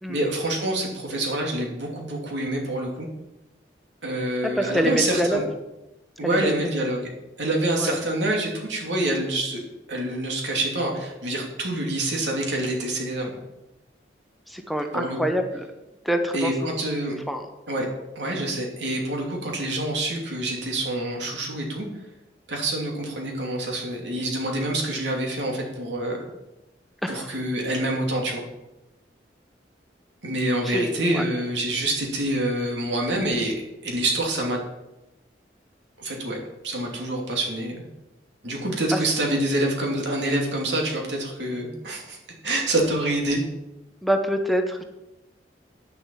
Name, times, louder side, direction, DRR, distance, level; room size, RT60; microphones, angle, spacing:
voice 1, 0.1-3.1 4.0-5.4 6.2-7.0 7.4-9.6 9.9-13.4 14.9-15.2 16.3-17.2 17.7-17.9 18.1-21.9 22.5-26.2 27.1-28.4 30.2-33.5 33.8-34.6 36.0-36.4 36.6-37.8 38.4-42.2 42.4-43.4, right 1 dB, 90° right, 0 dB, 2.8 m, -26 dB
voice 2, 4.6-5.4 6.2-6.5 7.8-8.0 14.5-15.4 16.0-16.7 17.3-17.4 27.0-27.3 30.6-31.2 38.9-39.0 44.0-44.8, right 1 dB, ahead, 5 dB, 0.7 m, -25 dB
9.1 x 7.0 x 7.2 m, 0.97 s
head